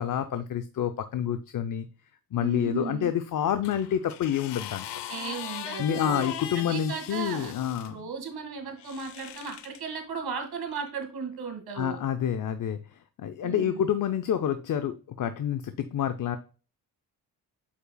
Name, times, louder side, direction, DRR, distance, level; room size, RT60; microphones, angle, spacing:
voice 1, 0.0-1.9 2.3-5.0 5.8-8.1 11.8-16.4, left 9 dB, 50° left, 9 dB, 0.6 m, -28 dB
voice 2, 2.4-3.1 5.1-6.3 6.6-7.5 7.8-12.0 13.4-13.9, right 6 dB, 65° right, 5 dB, 1.9 m, -36 dB
sound 1, 3.6-7.9 8.8-9.8 10.7-10.9, left 11 dB, 90° left, 0.7 m, -40 dB
8.3 x 5.6 x 2.2 m, 0.36 s
cardioid pair, 105°, 41 cm